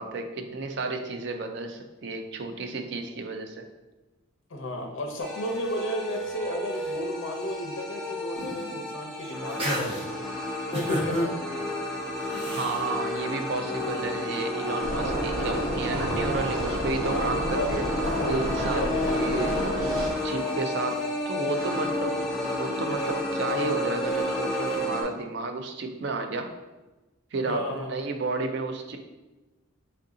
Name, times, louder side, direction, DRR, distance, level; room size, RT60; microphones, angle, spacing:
voice 1, 0.0-3.6 12.5-17.9 18.3-19.7 20.2-22.3 22.6-26.5 27.3-29.0, right 3 dB, 55° right, 6 dB, 0.4 m, -32 dB
voice 2, 4.5-10.0 10.7-11.6 17.0-17.8 18.2-19.2 27.5-27.9, left 1 dB, 65° left, 2 dB, 0.7 m, -33 dB
sound 1, 5.2-25.0, left 1 dB, ahead, 0.5 m, -31 dB
sound 2, 8.3-8.8 9.2-10.0 10.7-11.3 12.3-12.9, equal, 25° right, 1.2 m, -31 dB
sound 3, 14.8-20.1, right 1 dB, 80° right, 0.8 m, -30 dB
4.5 x 2.7 x 3.6 m, 1.1 s
head